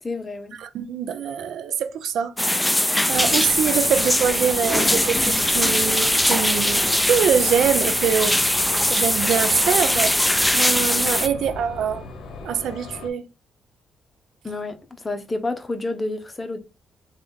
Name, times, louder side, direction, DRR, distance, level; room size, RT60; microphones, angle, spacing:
voice 1, 0.0-0.6 14.4-16.6, left 2 dB, 25° left, 0.8 m, -29 dB
voice 2, 0.6-2.7 3.1-8.4 8.9-10.2 10.5-12.1 12.4-13.2, right 8 dB, 80° right, 0.4 m, -24 dB
sound 1, 2.4-11.3, left 1 dB, 10° left, 0.3 m, -21 dB
sound 2, 3.1-13.1, left 3 dB, 70° left, 0.8 m, -38 dB
3.4 x 2.4 x 3.9 m
cardioid pair, 70°, 0 cm